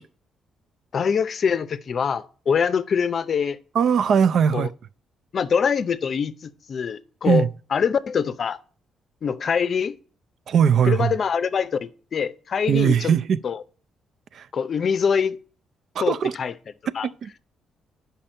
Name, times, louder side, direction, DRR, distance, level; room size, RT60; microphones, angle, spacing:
voice 1, 0.9-3.6 4.5-4.7 5.3-7.4 7.7-8.6 9.2-10.0 10.9-13.1 13.4-13.6 14.5-15.4 16.0-16.5 16.9-17.1, left 6 dB, 50° left, 0.5 m, -24 dB
voice 2, 3.7-4.7 7.3-7.5 10.5-11.1 12.7-13.4 14.3-14.5 16.0-16.3 17.0-17.4, right 7 dB, 60° right, 0.4 m, -20 dB
8.9 x 5.6 x 4.3 m
cardioid pair, 90°, 0 cm